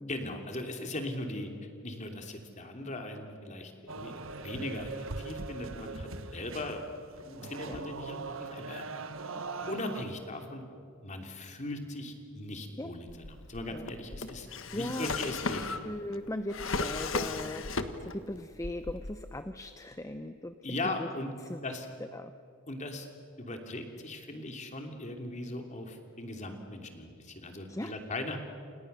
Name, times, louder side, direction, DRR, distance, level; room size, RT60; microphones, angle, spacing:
voice 1, 0.1-1.5 1.8-4.9 5.2-8.8 9.7-10.6 11.0-14.5 14.7-15.8 20.6-21.3 21.6-21.9 22.7-23.1 23.4-28.4, left 1 dB, 35° left, 4 dB, 3.0 m, -39 dB
sound 1, 3.9-10.0, right 3 dB, 70° right, 1.5 m, -41 dB
Drawer open or close, 13.1-18.3 18.6-19.4, left 3 dB, 65° left, 1.5 m, -36 dB
voice 2, 14.7-15.1 15.8-17.6 18.0-20.5 21.0-21.1 21.5-21.6 22.1-22.3 27.7-27.9, left 1 dB, 15° left, 9 dB, 0.7 m, -38 dB
29.0 x 28.5 x 6.8 m, 2.6 s
head